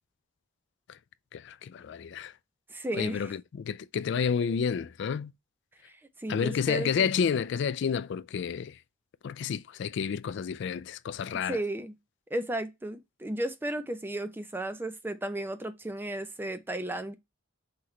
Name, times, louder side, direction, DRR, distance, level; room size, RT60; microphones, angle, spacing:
voice 1, 1.3-2.3 2.9-5.3 6.3-8.8 9.2-11.6, left 6 dB, 60° left, 0.3 m, -30 dB
voice 2, 2.7-3.3 6.2-7.1 11.5-11.9 12.3-17.1, right 1 dB, 10° right, 0.4 m, -34 dB
5.9 x 2.9 x 3.1 m
head